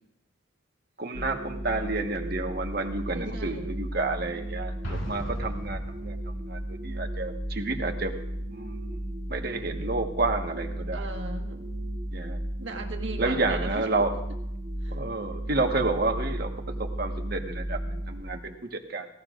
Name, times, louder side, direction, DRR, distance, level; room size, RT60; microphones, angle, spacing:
voice 1, 1.0-6.1 6.5-8.1 8.5-9.0 9.3-11.0 12.1-12.4 13.2-14.1 14.9-16.5 16.8-19.1, right 3 dB, 50° right, 4 dB, 1.3 m, -30 dB
sound 1, 1.1-18.2, right 1 dB, 15° right, 1.4 m, -34 dB
voice 2, 3.1-3.8 10.9-11.6 12.6-13.9 14.8-15.0, right 2 dB, 70° right, 3 dB, 1.7 m, -38 dB
Explosion, 4.8-6.5, equal, 85° left, 4.0 m, -39 dB
17.5 x 16.5 x 2.5 m, 0.79 s
head